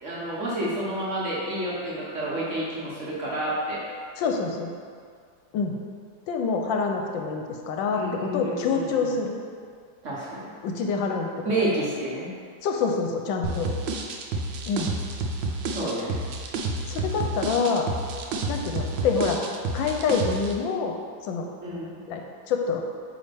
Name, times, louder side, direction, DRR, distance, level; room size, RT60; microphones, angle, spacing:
voice 1, 0.0-3.8 7.9-9.1 10.0-10.5 11.4-12.3 15.7-16.2 21.6-22.0, right 1 dB, 45° right, -7 dB, 1.2 m, -29 dB
voice 2, 4.2-4.7 5.5-5.7 6.3-9.4 10.6-11.3 12.6-13.7 14.7-14.9 16.9-17.9 18.5-19.4 19.7-20.9 21.2-21.5 22.1-22.8, left 5 dB, 80° left, 2 dB, 1.3 m, -26 dB
sound 1, 13.4-20.5, right 3 dB, 75° right, 1.3 m, -30 dB
8.2 x 3.4 x 3.4 m, 2.1 s
omnidirectional pair, 2.1 m